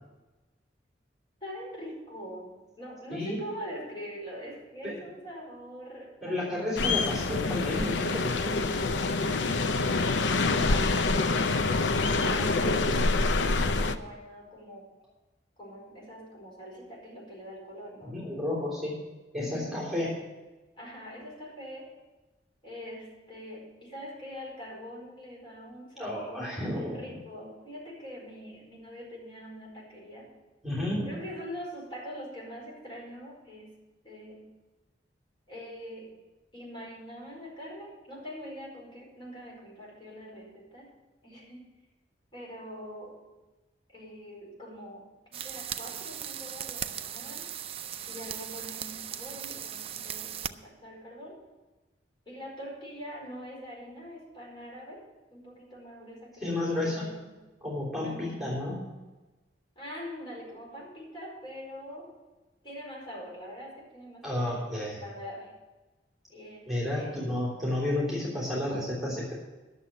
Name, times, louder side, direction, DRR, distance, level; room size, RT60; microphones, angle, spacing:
voice 1, 1.4-6.6 10.5-14.9 15.6-18.2 19.3-19.9 20.8-21.9 22.6-30.3 31.0-33.8 34.0-34.5 35.5-36.2 36.5-40.9 41.2-41.7 42.3-43.2 43.9-47.5 48.1-51.4 52.2-55.1 55.3-57.4 58.0-58.4 59.7-62.1 62.6-65.5 66.3-67.2, equal, 25° left, -4 dB, 4.8 m, -43 dB
voice 2, 6.2-8.6 18.0-19.0 19.3-20.2 26.0-27.1 30.6-31.1 56.4-57.1 57.6-58.8 64.2-65.0 66.7-69.4, left 1 dB, ahead, -6 dB, 3.4 m, -31 dB
sound 1, 6.8-14.0, left 3 dB, 90° left, 0.6 m, -26 dB
sound 2, 45.3-50.5, right 9 dB, 35° right, 0.4 m, -38 dB
11.0 x 7.2 x 8.8 m, 1.2 s
head